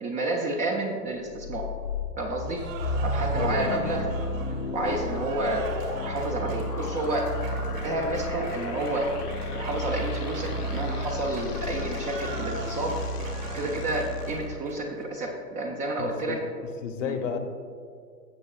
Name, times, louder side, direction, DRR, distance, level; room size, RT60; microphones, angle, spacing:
voice 1, 0.0-1.7 2.2-2.6 3.0-4.1 4.7-5.7 6.0-7.3 7.8-9.1 9.5-13.0 13.5-16.4 17.0-17.1, right 2 dB, 15° right, 1 dB, 0.5 m, -30 dB
sound 1, 1.3-14.5, left 2 dB, 75° left, 0.9 m, -32 dB
Cheering / Applause, 2.5-15.1, right 3 dB, 55° right, 1.8 m, -40 dB
voice 2, 3.3-3.8 16.0-16.5 16.8-17.4, left 7 dB, 50° left, 7 dB, 1.0 m, -31 dB
16.5 x 6.5 x 2.5 m, 2.2 s
figure-of-eight pair, 110°, 48 cm